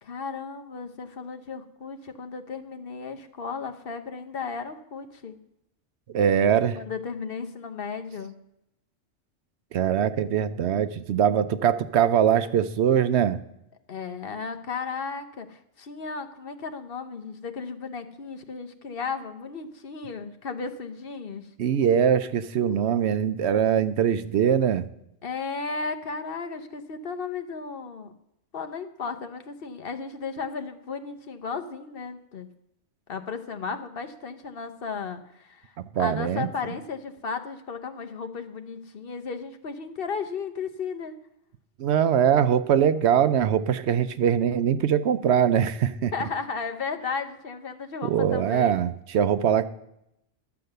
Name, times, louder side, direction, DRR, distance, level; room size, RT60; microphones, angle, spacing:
voice 1, 0.0-5.4 6.7-8.3 13.9-21.5 25.2-28.1 28.5-32.5 33.1-35.7 36.0-41.1 46.1-48.8, left 5 dB, 55° left, 7 dB, 1.0 m, -34 dB
voice 2, 6.1-6.8 9.7-13.4 21.6-24.8 35.9-36.5 41.8-46.1 48.0-49.7, right 8 dB, 70° right, 13 dB, 0.9 m, -22 dB
12.0 x 7.6 x 6.6 m, 0.81 s
omnidirectional pair, 1.2 m